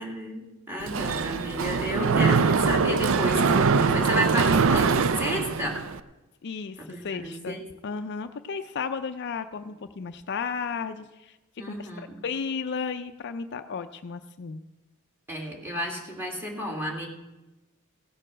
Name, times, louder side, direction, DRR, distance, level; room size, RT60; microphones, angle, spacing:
voice 1, 0.0-5.8 6.8-7.6 11.6-12.2 15.3-17.1, equal, 10° right, 0 dB, 2.1 m, -32 dB
Mechanisms, 0.8-6.0, right 5 dB, 60° right, 0.5 m, -23 dB
voice 2, 6.4-11.4 11.7-11.9 12.2-14.6, left 5 dB, 50° left, 9 dB, 0.4 m, -34 dB
16.5 x 6.8 x 6.2 m, 1.0 s
head